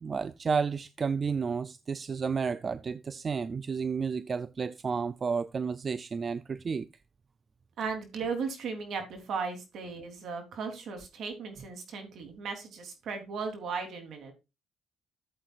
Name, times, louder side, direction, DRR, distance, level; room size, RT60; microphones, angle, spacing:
voice 1, 0.0-6.9, right 5 dB, 40° right, 0.5 m, -31 dB
voice 2, 7.8-14.3, right 5 dB, 70° right, 3.5 m, -36 dB
14.0 x 7.9 x 2.5 m
cardioid pair, 90°, 0 cm